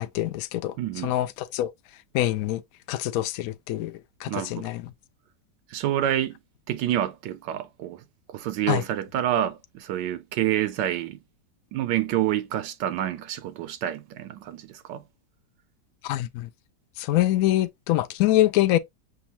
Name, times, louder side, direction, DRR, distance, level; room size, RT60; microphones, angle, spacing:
voice 1, 0.0-0.7 1.0-1.7 2.1-2.6 2.9-3.9 4.2-4.8 8.7-8.8 16.0-16.5 17.0-18.8, left 14 dB, 75° left, 0.8 m, -24 dB
voice 2, 0.8-1.1 4.3-4.7 5.7-6.4 6.7-8.0 8.3-11.2 11.7-15.0, right 12 dB, 85° right, 1.2 m, -28 dB
6.3 x 2.4 x 2.7 m
omnidirectional pair, 1.9 m